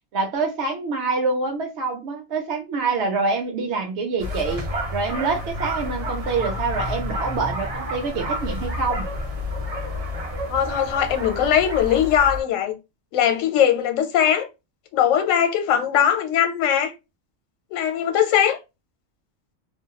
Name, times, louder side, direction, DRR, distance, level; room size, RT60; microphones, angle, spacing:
voice 1, 0.1-4.7 4.9-9.1, right 4 dB, 65° right, 0.8 m, -26 dB
sound 1, 4.2-12.4, left 1 dB, 45° right, 0.5 m, -29 dB
voice 2, 10.5-12.7 13.1-14.5 14.9-16.9 17.7-18.6, left 9 dB, 75° left, 1.0 m, -20 dB
2.5 x 2.3 x 2.8 m
omnidirectional pair, 1.4 m